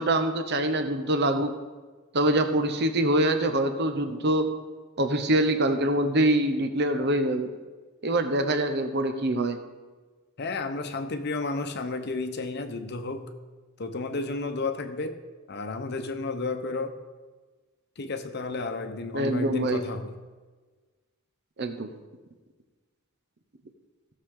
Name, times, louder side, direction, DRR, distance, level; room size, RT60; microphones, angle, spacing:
voice 1, 0.0-1.5 2.1-4.5 5.0-7.5 8.0-9.6 19.1-19.8 21.6-21.9, right 1 dB, 55° right, 8 dB, 0.9 m, -24 dB
voice 2, 10.4-13.3 13.8-15.2 15.5-17.0 18.0-20.1, left 3 dB, 50° left, 8 dB, 0.8 m, -32 dB
16.0 x 6.7 x 3.8 m, 1.3 s
head